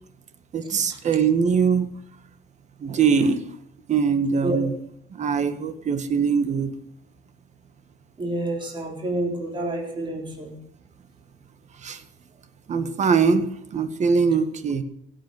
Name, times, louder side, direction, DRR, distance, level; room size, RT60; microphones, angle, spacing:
voice 1, 0.5-1.9 2.8-3.5 3.9-4.7 5.1-6.7 11.8-12.0 12.7-14.8, right 5 dB, 45° right, 11 dB, 1.8 m, -22 dB
voice 2, 8.2-10.5, right 1 dB, 30° right, 2 dB, 3.9 m, -28 dB
17.0 x 8.5 x 7.9 m, 0.72 s
cardioid pair, 110°, 17 cm